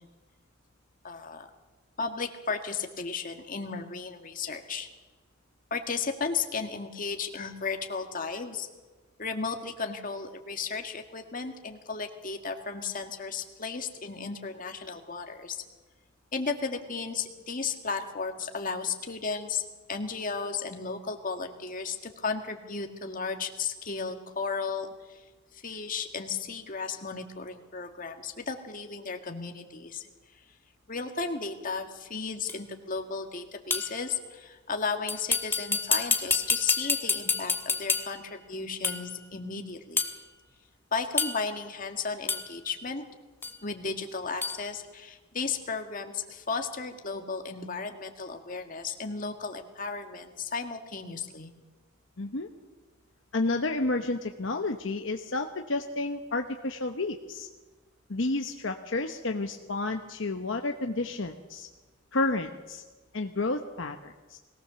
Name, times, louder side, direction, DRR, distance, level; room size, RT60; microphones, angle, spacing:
voice 1, 1.0-1.5 2.0-4.9 5.7-8.7 9.2-15.6 16.3-19.6 19.9-25.2 25.5-30.1 30.9-40.1 40.9-43.0 43.6-51.5, left 5 dB, 45° left, 5 dB, 1.9 m, -34 dB
sound 1, 32.5-32.6 33.7-34.0 35.1-38.3 38.8-39.1 40.0-40.2 41.2-41.6 42.3-42.5 43.4-43.6 44.4-44.6, left 4 dB, 10° left, 1.4 m, -28 dB
voice 2, 52.2-52.5 53.3-57.5 58.1-61.7 62.1-62.8 63.1-64.4, left 2 dB, 70° left, 5 dB, 1.0 m, -31 dB
21.5 x 18.0 x 7.0 m, 1.3 s
head